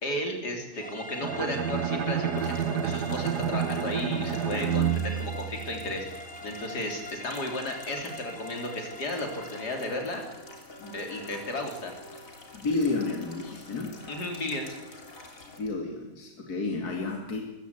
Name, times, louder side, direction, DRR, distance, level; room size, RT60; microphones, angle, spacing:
voice 1, 0.0-10.2 10.8-11.9 14.1-14.7, left 1 dB, 90° left, 3 dB, 3.9 m, -34 dB
sound 1, 0.7-10.2, left 2 dB, 5° left, 0.9 m, -43 dB
Bowed string instrument, 1.2-6.2, right 8 dB, 85° right, 1.8 m, -29 dB
sound 2, 2.4-15.6, left 2 dB, 55° left, 3.5 m, -47 dB
voice 2, 4.5-5.0 12.5-14.0 15.6-17.4, left 3 dB, 70° left, 2 dB, 2.9 m, -31 dB
22.5 x 15.0 x 8.2 m, 1.0 s
omnidirectional pair, 1.7 m